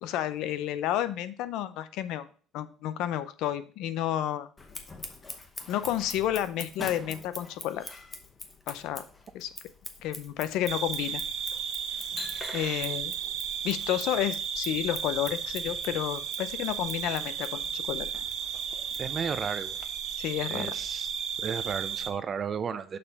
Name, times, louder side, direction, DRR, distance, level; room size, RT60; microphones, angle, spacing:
voice 1, 0.0-2.3 2.5-4.5 5.7-7.8 8.7-9.0 9.3-9.5 10.0-11.2 12.5-13.1 13.6-18.1 20.2-20.7, left 12 dB, 70° left, 13 dB, 0.5 m, -31 dB
Scissors, 4.6-19.9, left 3 dB, 20° left, 0.8 m, -44 dB
sound 1, 10.7-22.1, right 7 dB, 50° right, 0.9 m, -34 dB
voice 2, 19.0-19.8 20.5-21.1 21.4-23.0, right 7 dB, 30° right, 12 dB, 0.6 m, -33 dB
6.7 x 5.5 x 4.1 m, 0.42 s
cardioid pair, 150°, 0 cm